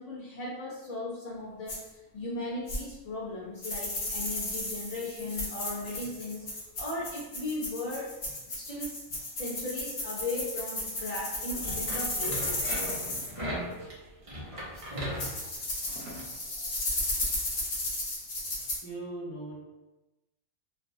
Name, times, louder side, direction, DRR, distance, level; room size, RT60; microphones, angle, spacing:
voice 1, 0.0-8.1 8.5-9.0 9.4-12.7 13.5-13.6, left 2 dB, 80° left, -6 dB, 0.3 m, -37 dB
sound 1, 1.7-1.8 2.7-2.8 3.6-13.3 14.8-14.9 15.2-18.8, left 2 dB, 45° left, 0.6 m, -34 dB
sound 2, 4.3-7.9 8.2-8.4 8.7-9.3 9.8-10.6 10.9-12.6 12.9-13.1 13.4-14.0 14.3-14.4 14.7-15.4 15.6-15.7 15.9-17.8 18.3-18.6, right 1 dB, 65° right, 1.3 m, -52 dB
sound 3, 11.5-16.3, equal, 45° right, 0.4 m, -38 dB
voice 2, 18.8-19.6, right 2 dB, 10° left, -9 dB, 1.1 m, -39 dB
3.5 x 2.3 x 2.5 m, 1.0 s
omnidirectional pair, 1.6 m